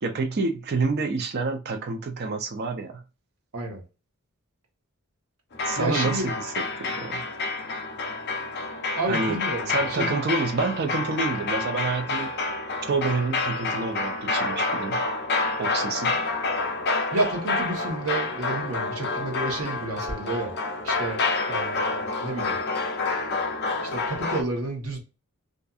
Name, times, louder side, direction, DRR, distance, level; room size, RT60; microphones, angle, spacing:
voice 1, 0.0-3.0 5.6-7.2 9.1-9.4 9.7-12.3 12.9-15.0 15.6-16.2, right 3 dB, 45° right, 0.5 m, -28 dB
sound 1, 5.5-24.4, left 3 dB, 45° left, 0.5 m, -28 dB
voice 2, 5.8-6.3 9.0-10.2 17.1-20.5 20.8-21.2 21.5-22.6 23.9-25.0, right 2 dB, 70° right, 1.1 m, -30 dB
2.6 x 2.4 x 2.3 m
head